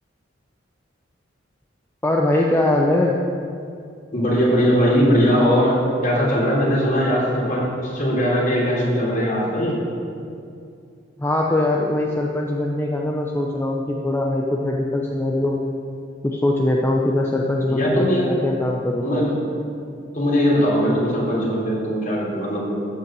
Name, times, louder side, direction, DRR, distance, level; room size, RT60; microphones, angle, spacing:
voice 1, 2.0-3.2 11.2-15.7 16.2-19.2, left 1 dB, 10° left, -1 dB, 0.8 m, -21 dB
voice 2, 4.1-5.8 6.0-9.8 17.7-18.3 19.0-19.4 20.1-22.7, equal, 40° left, -5 dB, 3.8 m, -20 dB
14.5 x 5.8 x 9.1 m, 2.4 s
head